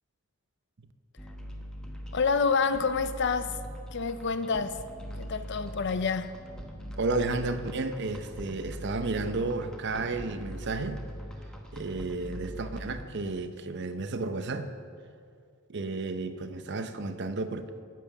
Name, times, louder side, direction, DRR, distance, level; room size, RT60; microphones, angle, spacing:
sound 1, 1.2-13.0, equal, 5° left, 1.0 m, -42 dB
voice 1, 2.1-3.6 3.9-4.8 5.2-6.3, left 5 dB, 50° left, 0.5 m, -28 dB
voice 2, 7.0-11.0 11.7-14.7 15.7-17.8, right 3 dB, 50° right, 0.7 m, -32 dB
10.5 x 9.4 x 7.0 m
head